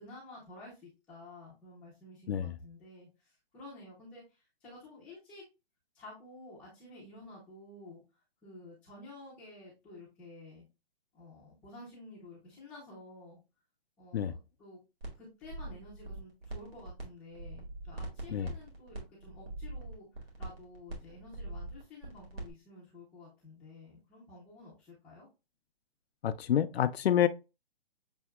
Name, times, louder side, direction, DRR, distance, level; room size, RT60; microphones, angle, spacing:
voice 1, 0.0-5.4 5.9-8.0 8.4-10.6 11.1-13.4 14.0-14.8 15.1-25.3, left 2 dB, 5° left, 0.5 m, -51 dB
sound 1, 15.0-15.1 15.4-17.0 17.3-22.5, right 2 dB, 75° right, 2.0 m, -42 dB
voice 2, 26.2-27.3, left 10 dB, 85° left, 0.5 m, -28 dB
6.9 x 2.8 x 2.2 m
hypercardioid pair, 160°, 31 cm